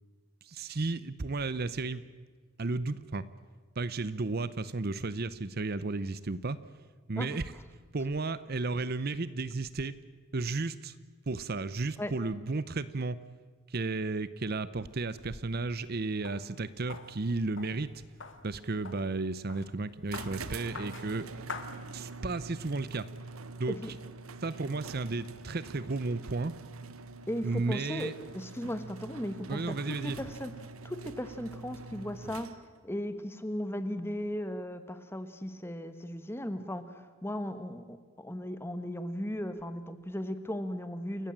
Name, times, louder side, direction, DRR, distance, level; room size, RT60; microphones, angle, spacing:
voice 1, 0.4-2.0 2.6-3.3 3.8-6.6 7.1-7.4 7.9-10.0 10.3-10.9 11.3-13.2 13.7-17.9 18.4-21.3 21.9-23.1 23.6-23.8 24.4-26.5 27.4-28.1 29.5-30.2, right 3 dB, 45° right, 15 dB, 0.7 m, -33 dB
sound 1, 14.9-22.4, left 4 dB, 60° left, 1.9 m, -48 dB
sound 2, 20.1-32.9, right 3 dB, 85° right, 1.1 m, -45 dB
voice 2, 27.3-30.5 30.8-32.6 32.8-41.3, equal, 10° left, 10 dB, 1.3 m, -37 dB
28.5 x 15.0 x 8.8 m, 1.5 s
head